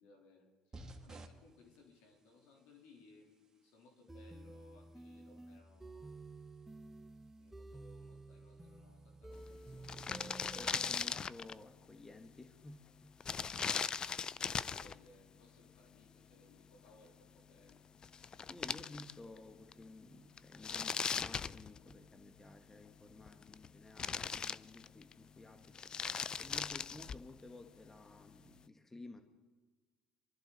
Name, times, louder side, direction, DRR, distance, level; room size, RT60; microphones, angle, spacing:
voice 1, 0.0-6.2 7.4-10.2 13.3-17.9, left 2 dB, 75° left, 1 dB, 3.5 m, -64 dB
sound 1, 0.7-9.4, right 1 dB, 25° right, 1.7 m, -61 dB
sound 2, 4.1-10.9, right 2 dB, 10° right, 0.9 m, -52 dB
sound 3, 9.5-9.6 9.7-11.6 13.2-15.0 17.7-17.8 18.0-19.4 19.7-19.8 20.4-22.1 23.1-23.7 24.0-25.1 25.6-27.3, left 6 dB, 35° left, 0.4 m, -39 dB
voice 2, 10.5-13.5 18.5-29.2, left 2 dB, 15° left, 6 dB, 1.4 m, -54 dB
24.5 x 12.5 x 4.0 m, 1.3 s
supercardioid pair, 80°, 2 cm